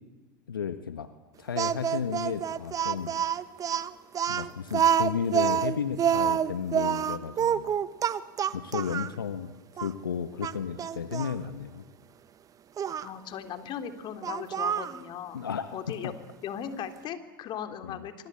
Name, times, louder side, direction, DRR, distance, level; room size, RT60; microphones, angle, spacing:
voice 1, 0.5-1.1 1.4-3.1 4.3-7.7 8.5-9.5 9.8-11.8 15.3-16.1 17.8-18.0, left 7 dB, 85° left, 10 dB, 1.4 m, -33 dB
Speech, 1.6-9.1 9.8-9.9 10.4-11.4 12.8-13.1 14.2-15.0, right 8 dB, 30° right, 1.3 m, -27 dB
voice 2, 13.0-15.4 15.7-16.1 16.4-18.3, left 9 dB, 45° left, 8 dB, 3.5 m, -38 dB
26.0 x 25.5 x 8.5 m, 1.2 s
hypercardioid pair, 90°, 11 cm